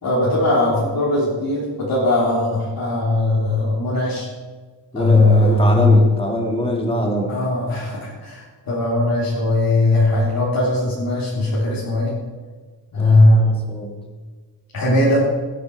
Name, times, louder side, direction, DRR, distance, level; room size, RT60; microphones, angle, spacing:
voice 1, 0.0-4.3 4.9-6.0 7.3-12.1 12.9-13.6 14.7-15.2, left 2 dB, 60° left, -6 dB, 3.4 m, -18 dB
voice 2, 4.9-7.3 13.0-13.9, equal, 15° left, 1 dB, 2.3 m, -23 dB
18.0 x 10.0 x 4.7 m, 1.4 s
wide cardioid pair, 180°, 41 cm